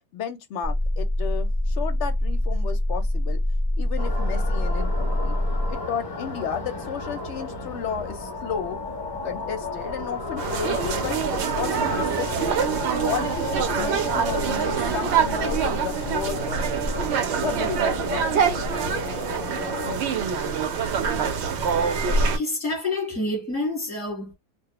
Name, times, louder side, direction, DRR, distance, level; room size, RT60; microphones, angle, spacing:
voice 1, 0.1-3.4 3.8-5.4 5.7-8.8 9.2-17.1 17.4-18.4, left 7 dB, 65° left, 0.8 m, -33 dB
sound 1, 0.6-5.7, left 1 dB, 25° right, 0.6 m, -24 dB
sound 2, 4.0-20.0, left 2 dB, 40° left, 0.3 m, -33 dB
sound 3, 10.4-22.4, right 6 dB, 65° right, 0.7 m, -25 dB
voice 2, 21.6-22.0 22.3-24.3, left 2 dB, 5° right, 1.0 m, -29 dB
2.3 x 2.0 x 2.9 m
omnidirectional pair, 1.5 m